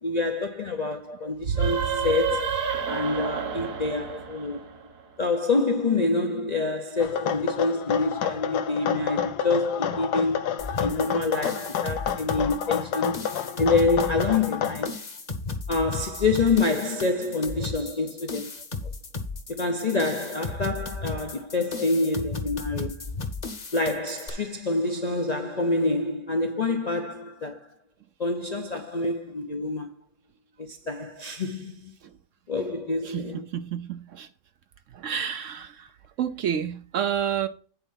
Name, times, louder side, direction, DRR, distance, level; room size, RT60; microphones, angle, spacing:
voice 1, 0.0-4.6 5.2-13.3 13.6-15.0 15.7-18.5 19.5-23.0 23.7-27.7 28.2-29.9 30.6-31.9 32.5-33.4, left 3 dB, 50° left, 0.5 m, -27 dB
sound 1, 1.4-5.0, right 7 dB, 85° right, 1.7 m, -29 dB
sound 2, 7.0-14.9, left 9 dB, 85° left, 1.3 m, -29 dB
sound 3, 10.6-24.3, left 3 dB, 30° left, 0.9 m, -35 dB
voice 2, 33.0-34.3 34.9-37.5, right 9 dB, 65° right, 0.8 m, -30 dB
8.9 x 4.5 x 5.6 m
omnidirectional pair, 1.6 m